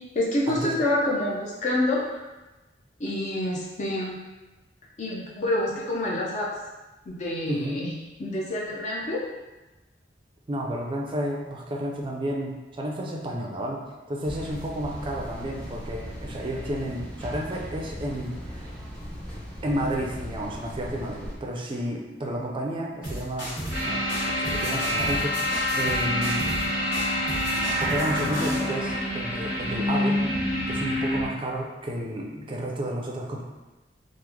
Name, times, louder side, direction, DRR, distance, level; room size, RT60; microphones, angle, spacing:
voice 1, 0.1-2.2 3.0-4.2 5.0-6.5 7.1-7.9 8.2-9.2, left 1 dB, 45° left, -4 dB, 0.5 m, -27 dB
voice 2, 7.5-7.8 10.5-18.7 19.6-23.5 23.9-26.5 27.8-30.3 30.7-33.4, right 1 dB, 30° right, -1 dB, 0.4 m, -31 dB
sound 1, 14.2-21.4, equal, 5° left, 0.7 m, -38 dB
sound 2, 23.0-23.8 24.1-26.7 26.9-28.6, equal, 80° left, 1.4 m, -34 dB
sound 3, 23.7-31.3, left 1 dB, 60° left, 1.3 m, -27 dB
3.0 x 2.0 x 3.5 m, 1.1 s
head